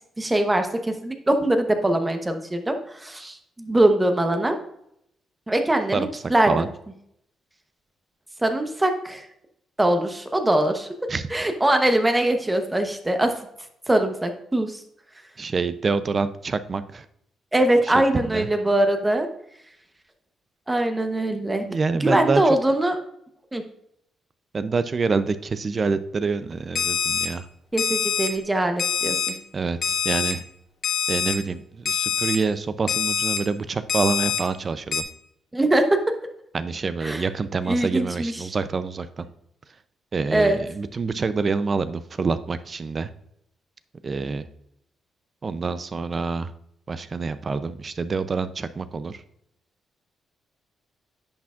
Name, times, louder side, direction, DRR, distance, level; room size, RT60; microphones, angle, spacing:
voice 1, 0.2-4.6 5.5-6.5 8.4-9.3 9.8-10.9 11.3-13.3 13.9-14.8 17.5-19.3 20.7-21.6 22.0-23.0 23.5-23.6 27.7-29.3 35.5-36.1 37.0-37.2 37.7-38.4 40.3-40.6, right 1 dB, 15° right, 6 dB, 0.9 m, -22 dB
voice 2, 15.4-17.1 17.8-17.9 18.2-18.5 21.7-22.4 24.5-27.5 29.5-30.4 31.1-35.1 36.5-39.3 40.1-43.1 44.0-44.5 45.4-46.5 46.9-49.2, right 4 dB, 35° right, 12 dB, 0.4 m, -26 dB
Alarm, 26.8-27.3 27.8-28.3 28.8-29.3 29.8-30.3 30.8-31.3 31.9-32.4 32.9-33.4 33.9-34.4 34.9-35.0, left 7 dB, 55° left, 1.2 m, -24 dB
10.0 x 6.0 x 2.4 m, 0.74 s
cardioid pair, 125°, 0 cm